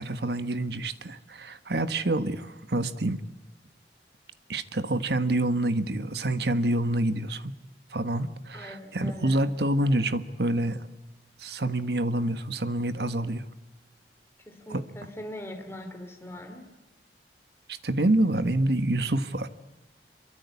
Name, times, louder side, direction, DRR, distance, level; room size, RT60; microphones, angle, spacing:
voice 1, 0.0-3.2 4.5-7.5 7.9-10.8 11.4-13.4 14.7-14.8 17.7-19.5, right 1 dB, 65° right, 12 dB, 1.4 m, -27 dB
voice 2, 8.5-9.5 14.5-16.8, left 1 dB, 15° left, 4 dB, 2.9 m, -41 dB
26.0 x 23.5 x 8.4 m, 1.1 s
head